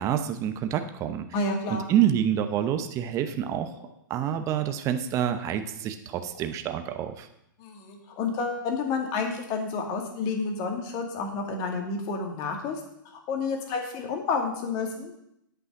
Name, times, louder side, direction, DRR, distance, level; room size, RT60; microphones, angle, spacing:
voice 1, 0.0-1.3 1.7-3.7 4.1-7.3, right 10 dB, 30° right, 8 dB, 0.7 m, -27 dB
voice 2, 1.3-1.9 7.6-12.8 13.1-15.1, left 4 dB, 35° left, 3 dB, 2.2 m, -30 dB
sound 1, 3.7-3.9 4.4-4.7 5.2-5.5 6.2-6.5 7.3-7.4 8.1-8.6 9.2-9.3, left 3 dB, 65° left, 3.8 m, -51 dB
8.6 x 5.5 x 7.6 m, 0.79 s
hypercardioid pair, 130°, 11 cm